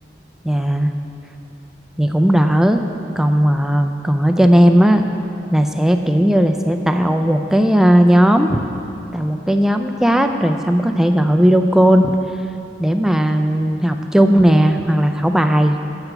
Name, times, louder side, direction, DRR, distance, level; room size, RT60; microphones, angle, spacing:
voice 1, 0.4-0.9 2.0-2.8 3.2-5.0 5.5-8.6 9.1-12.1 12.8-15.8, equal, 5° right, 6 dB, 0.3 m, -15 dB
7.9 x 7.8 x 5.8 m, 2.7 s
head